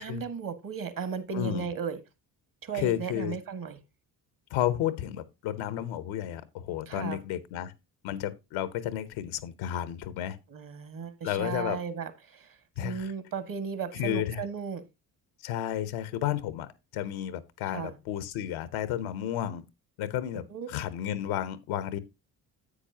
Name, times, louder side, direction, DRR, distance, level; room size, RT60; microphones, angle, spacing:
voice 1, 0.0-2.0 2.6-3.8 6.9-7.2 10.5-14.8 17.7-18.0 20.3-20.7, right 6 dB, 45° right, 1.7 m, -35 dB
voice 2, 1.3-1.7 2.7-3.3 4.5-7.7 8.0-10.4 11.2-11.8 12.8-13.1 13.9-14.4 15.4-19.6 20.0-22.0, left 11 dB, 70° left, 1.0 m, -32 dB
9.9 x 8.4 x 2.8 m
hypercardioid pair, 50°, 48 cm